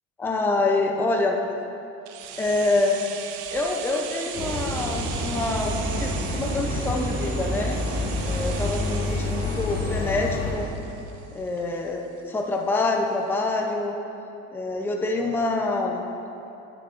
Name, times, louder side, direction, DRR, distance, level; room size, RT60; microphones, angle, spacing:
voice 1, 0.2-1.4 2.4-3.0 3.5-7.8 8.3-10.7 11.3-14.0 14.5-16.1, left 2 dB, 5° left, 1 dB, 0.5 m, -26 dB
sound 1, 2.1-11.9 12.2-12.3, right 9 dB, 85° right, 0.6 m, -38 dB
sound 2, 4.3-10.5, left 1 dB, 30° left, 2.0 m, -28 dB
9.8 x 9.7 x 2.5 m, 2.9 s
cardioid pair, 145°, 30 cm